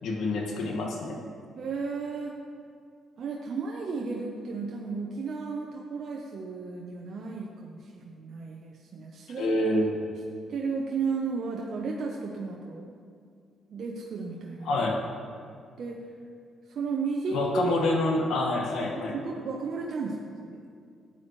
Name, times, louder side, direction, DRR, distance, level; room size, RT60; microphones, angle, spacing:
voice 1, 0.0-1.2 9.4-10.0 14.6-15.0 17.3-19.2, left 2 dB, 75° left, 0 dB, 1.7 m, -27 dB
voice 2, 1.5-2.4 3.2-9.5 10.5-12.9 13.7-14.8 15.8-16.0 16.7-17.9 19.1-20.6, right 4 dB, 55° right, -1 dB, 0.9 m, -34 dB
13.0 x 9.2 x 3.2 m, 2.3 s
cardioid pair, 90°, 0 cm